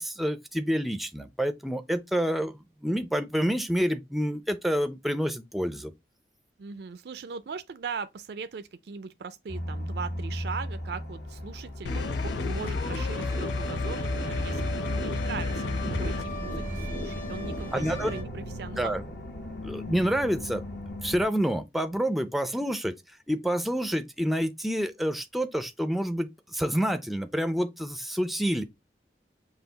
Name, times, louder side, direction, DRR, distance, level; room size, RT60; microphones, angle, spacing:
voice 1, 0.0-5.9 17.7-18.1 18.8-19.0 19.6-20.6 21.0-22.9 23.3-28.6, equal, ahead, 0.4 m, -28 dB
voice 2, 6.6-19.0, right 5 dB, 65° right, 0.4 m, -39 dB
sound 1, 9.5-21.2, left 1 dB, 70° left, 1.3 m, -38 dB
sound 2, 11.9-16.3, left 4 dB, 90° left, 0.5 m, -31 dB
sound 3, 11.9-18.2, equal, 50° left, 1.5 m, -36 dB
5.7 x 2.4 x 3.8 m
head